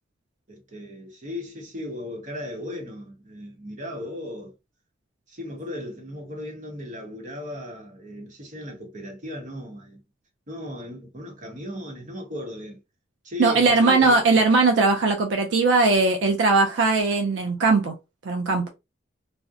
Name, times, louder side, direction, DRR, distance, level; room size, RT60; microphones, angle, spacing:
voice 1, 0.5-4.5 5.3-10.0 10.5-12.8 13.2-14.2, left 1 dB, 45° right, 0.9 m, -36 dB
voice 2, 13.4-17.9 18.2-18.7, right 3 dB, 75° right, 0.4 m, -19 dB
2.7 x 2.0 x 2.3 m
head